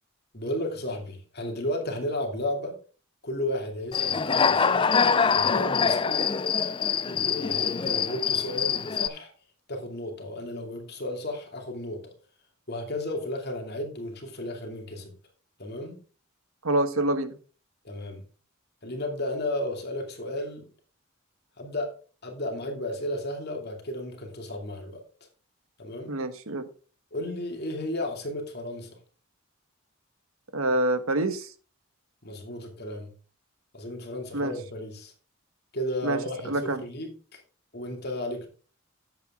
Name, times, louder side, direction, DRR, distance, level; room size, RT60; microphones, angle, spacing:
voice 1, 0.3-2.7 3.2-4.9 5.3-6.4 7.0-9.3 9.7-12.1 12.7-15.1 15.6-16.0 17.8-18.2 18.8-20.7 21.6-21.9 22.2-25.0 25.8-26.2 27.1-29.0 32.2-33.1 33.7-35.1 35.7-37.4 37.7-38.5, left 1 dB, 50° left, 2.6 m, -33 dB
Human voice / Cricket, 3.9-9.1, left 6 dB, 25° left, 0.3 m, -24 dB
voice 2, 16.6-17.4 26.1-26.6 30.5-31.5 34.3-34.5 36.0-36.2 36.4-36.8, right 1 dB, 75° right, 1.3 m, -26 dB
10.5 x 8.0 x 3.6 m
head